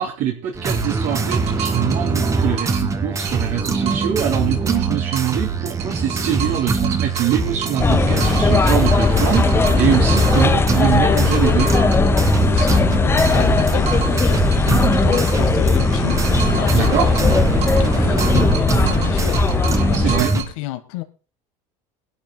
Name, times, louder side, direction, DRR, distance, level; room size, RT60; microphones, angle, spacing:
voice 1, 0.0-11.7 16.7-17.1 19.9-20.3, right 10 dB, 55° right, 2.9 m, -23 dB
sound 1, 0.5-20.4, right 4 dB, 20° right, 1.6 m, -23 dB
sound 2, 0.7-2.9 3.2-5.5 5.8-7.9 8.2-12.9 13.2-15.5 15.8-17.9 18.2-20.5, right 8 dB, 40° right, 3.4 m, -32 dB
sound 3, 7.8-20.2, left 4 dB, 15° left, 0.9 m, -18 dB
voice 2, 12.5-21.0, left 14 dB, 85° left, 1.6 m, -31 dB
22.5 x 11.5 x 2.3 m
cardioid pair, 145°, 16 cm